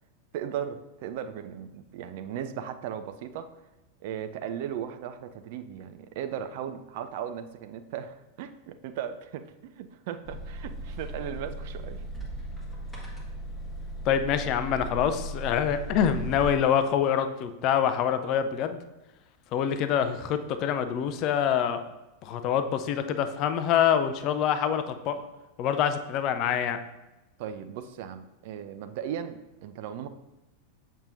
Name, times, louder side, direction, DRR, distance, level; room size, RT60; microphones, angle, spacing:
voice 1, 0.3-3.5 4.0-12.0 27.4-30.1, right 9 dB, 50° right, 9 dB, 0.4 m, -37 dB
sound 1, 10.2-16.5, right 1 dB, 10° left, 1.2 m, -37 dB
voice 2, 14.0-18.8 19.5-21.8 22.2-25.2 25.6-26.8, left 8 dB, 40° left, 9 dB, 0.4 m, -26 dB
7.0 x 5.4 x 2.5 m, 1.0 s
figure-of-eight pair, 90°, 0 cm